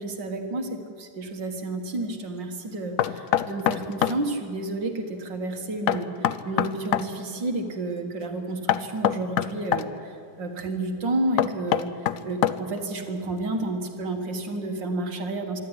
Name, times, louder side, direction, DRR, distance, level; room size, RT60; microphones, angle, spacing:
voice 1, 0.0-6.1 6.4-10.1 10.4-11.9 12.2-15.6, right 2 dB, 60° right, 5 dB, 2.4 m, -30 dB
Knock, 3.0-4.2 5.9-7.1 8.7-9.9 11.4-12.8, left 11 dB, 90° left, 0.7 m, -24 dB
25.5 x 12.5 x 9.9 m, 2.4 s
omnidirectional pair, 2.3 m